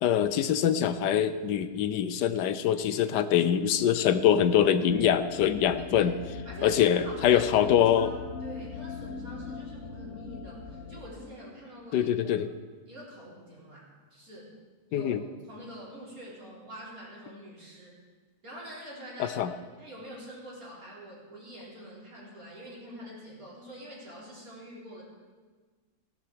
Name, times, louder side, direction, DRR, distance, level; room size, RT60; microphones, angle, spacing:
voice 1, 0.0-6.1 6.6-8.1 11.9-12.5 14.9-15.2 19.4-19.5, left 9 dB, 85° left, 12 dB, 1.3 m, -24 dB
sound 1, 4.9-11.0, left 5 dB, 55° left, 1.3 m, -41 dB
voice 2, 6.4-12.3 12.9-14.5 14.9-18.0 18.4-19.4 19.8-25.0, equal, 55° right, -6 dB, 4.7 m, -46 dB
17.5 x 11.0 x 4.8 m, 1.4 s
omnidirectional pair, 1.8 m